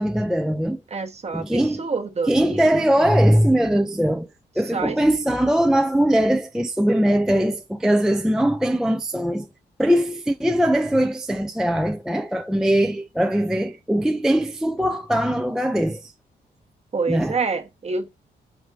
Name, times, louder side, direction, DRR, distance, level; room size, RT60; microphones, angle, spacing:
voice 1, 0.0-0.8 1.3-1.8 2.3-4.3 4.6-9.5 9.8-16.1 17.1-17.4, right 1 dB, 5° right, 0.3 m, -21 dB
voice 2, 0.9-2.6 4.7-5.0 16.9-18.1, right 4 dB, 35° right, 1.0 m, -27 dB
4.6 x 3.6 x 3.2 m
cardioid pair, 100°, 19 cm